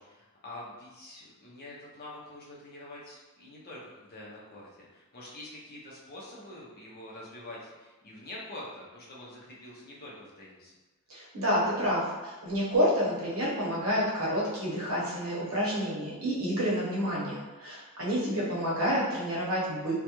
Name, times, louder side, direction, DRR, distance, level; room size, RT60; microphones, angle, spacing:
voice 1, 0.0-10.7, left 1 dB, 45° left, -5 dB, 0.6 m, -46 dB
voice 2, 11.1-19.9, equal, 70° right, -6 dB, 0.8 m, -29 dB
2.3 x 2.1 x 2.9 m, 1.2 s
head